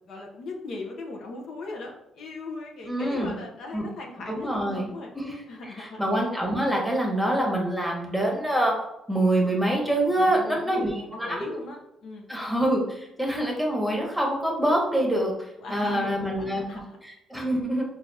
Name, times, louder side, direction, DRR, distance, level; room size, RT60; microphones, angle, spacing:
voice 1, 0.1-5.1 5.5-6.0 10.2-12.3 15.6-16.8, left 3 dB, 70° left, 0 dB, 0.7 m, -39 dB
voice 2, 2.8-3.3 3.7-3.8 4.3-4.9 5.1-5.4 5.8-8.7 9.1-11.5 12.3-15.3 15.7-17.8, right 1 dB, 5° right, -1 dB, 1.1 m, -25 dB
3.9 x 2.5 x 3.3 m, 0.87 s
cardioid pair, 90°, 0 cm